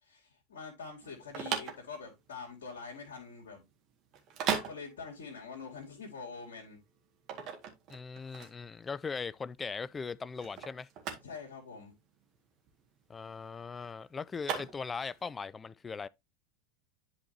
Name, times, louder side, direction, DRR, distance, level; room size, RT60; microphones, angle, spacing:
voice 1, 0.0-3.6 4.7-6.8 11.2-11.9, left 5 dB, 65° left, 2.5 m, -45 dB
sound 1, 1.0-15.2, right 7 dB, 40° right, 1.9 m, -39 dB
voice 2, 7.9-10.9 13.1-16.1, left 5 dB, 20° left, 0.3 m, -39 dB
11.0 x 4.5 x 2.8 m
figure-of-eight pair, 80°, 0 cm